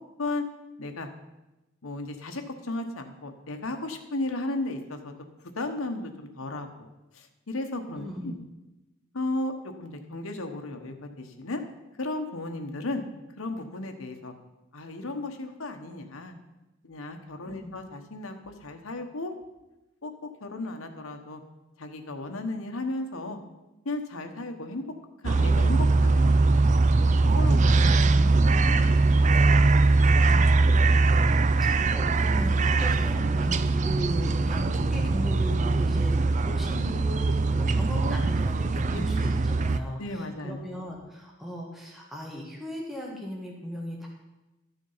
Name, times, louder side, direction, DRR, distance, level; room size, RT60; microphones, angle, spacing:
voice 1, 1.8-5.1 5.6-6.9 7.1-8.3 9.1-9.5 9.8-11.6 12.0-13.0 13.4-14.3 14.7-16.3 16.8-19.3 20.0-21.4 21.8-23.4 23.8-24.8 25.2-26.4 27.4-28.0 28.3-30.6 38.8-39.1 40.0-40.7, left 2 dB, 85° left, 5 dB, 1.2 m, -35 dB
voice 2, 7.9-8.4 17.5-17.7 31.1-36.1 36.4-44.1, equal, ahead, -2 dB, 1.5 m, -38 dB
sound 1, 25.2-39.8, right 3 dB, 35° right, 0.4 m, -22 dB
12.5 x 7.2 x 5.6 m, 1.0 s
head